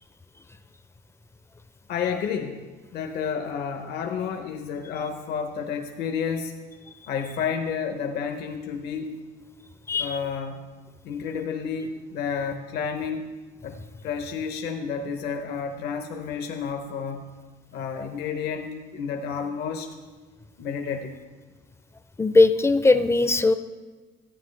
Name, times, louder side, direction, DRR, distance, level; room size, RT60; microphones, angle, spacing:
voice 1, 1.9-2.7 2.9-6.5 7.1-9.2 10.0-10.8 11.0-13.4 13.6-17.4 17.7-19.9 20.6-21.2, left 6 dB, 75° left, 5 dB, 0.8 m, -31 dB
voice 2, 9.9-10.2 22.2-23.5, left 3 dB, 15° left, 11 dB, 0.4 m, -19 dB
14.0 x 9.0 x 3.2 m, 1.3 s
cardioid pair, 110°, 17 cm